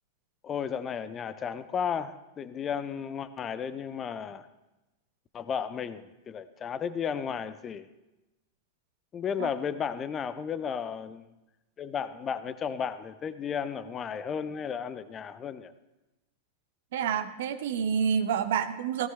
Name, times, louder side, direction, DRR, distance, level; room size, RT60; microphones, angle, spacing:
voice 1, 0.4-4.5 5.3-7.9 9.1-11.3 11.8-15.7, left 7 dB, 25° left, 13 dB, 0.7 m, -34 dB
voice 2, 16.9-19.1, right 7 dB, 55° right, 10 dB, 1.0 m, -28 dB
16.5 x 15.5 x 3.4 m, 1.0 s
figure-of-eight pair, 90°, 0 cm